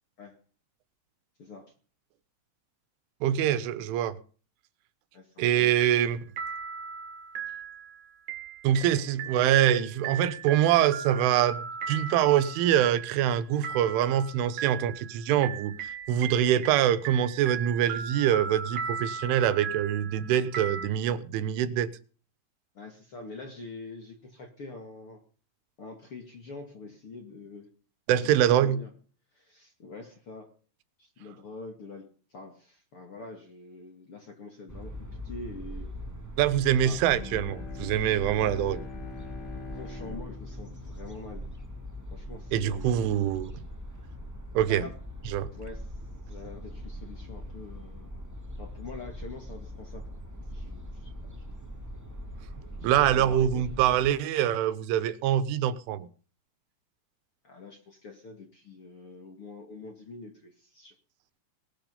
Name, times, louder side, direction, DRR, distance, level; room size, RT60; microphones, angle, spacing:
voice 1, 1.4-1.7 5.1-5.7 22.7-25.2 25.8-27.7 28.2-28.9 29.3-30.5 31.0-35.0 35.2-35.9 36.8-37.0 38.4-38.6 39.7-41.5 42.1-42.8 44.7-45.0 45.5-46.0 46.3-48.1 48.6-50.1 50.5-51.4 52.8-53.6 57.4-61.0, left 3 dB, 40° left, 2.1 m, -45 dB
voice 2, 3.2-4.2 5.4-6.2 8.6-21.9 28.1-28.8 36.4-38.8 42.5-43.5 44.6-44.9 45.3-45.5 52.7-56.1, right 10 dB, 85° right, 3.6 m, -24 dB
sound 1, 5.7-6.1 6.4-20.9, right 6 dB, 45° right, 3.8 m, -38 dB
sound 2, 34.7-54.1, left 1 dB, 25° right, 0.4 m, -41 dB
Bowed string instrument, 36.9-42.3, left 3 dB, 60° left, 4.7 m, -45 dB
20.0 x 12.5 x 5.4 m
omnidirectional pair, 5.5 m